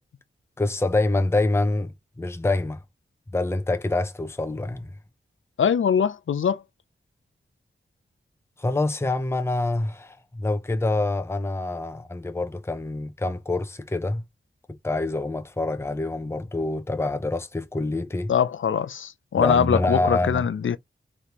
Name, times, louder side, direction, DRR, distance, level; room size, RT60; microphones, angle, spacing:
voice 1, 0.6-2.8 3.3-4.9 8.6-14.2 14.8-18.3 19.4-20.4, left 2 dB, 10° left, 0.6 m, -26 dB
voice 2, 5.6-6.6 18.3-20.8, left 7 dB, 70° left, 0.5 m, -22 dB
4.1 x 3.3 x 2.9 m
wide cardioid pair, 65°, 21 cm